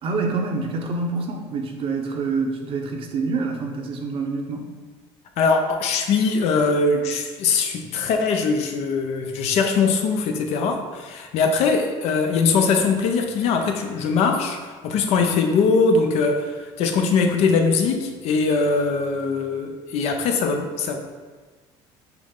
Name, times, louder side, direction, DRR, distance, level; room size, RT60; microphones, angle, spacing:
voice 1, 0.0-4.7, right 4 dB, 50° right, 3 dB, 0.7 m, -26 dB
voice 2, 5.4-21.0, left 4 dB, 65° left, 4 dB, 0.6 m, -21 dB
5.8 x 2.0 x 3.7 m, 1.4 s
supercardioid pair, 95°, 12 cm